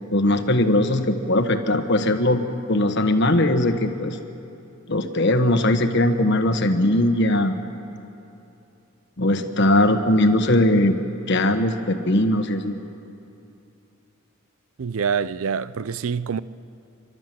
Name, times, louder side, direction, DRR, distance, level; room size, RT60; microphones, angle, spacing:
voice 1, 0.1-2.4 2.7-4.2 4.9-7.6 9.2-10.9 11.3-12.7, left 1 dB, 60° left, 1.3 m, -20 dB
voice 2, 14.8-16.4, right 6 dB, 85° right, 0.5 m, -25 dB
29.0 x 12.5 x 7.7 m
head